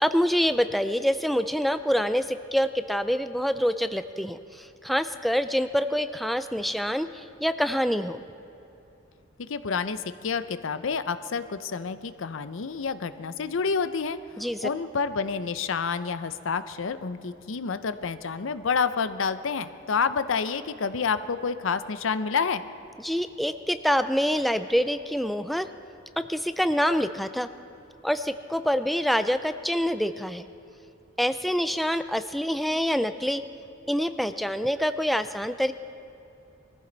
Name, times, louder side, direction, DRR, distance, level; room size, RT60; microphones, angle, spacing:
voice 1, 0.0-8.2 14.4-14.7 23.0-25.7 26.2-27.5 28.0-30.5 31.2-33.4 33.9-35.7, equal, ahead, 10 dB, 0.3 m, -26 dB
voice 2, 9.4-14.2 14.6-22.6, left 5 dB, 70° left, 13 dB, 0.6 m, -28 dB
22.0 x 15.0 x 4.0 m, 2.8 s
head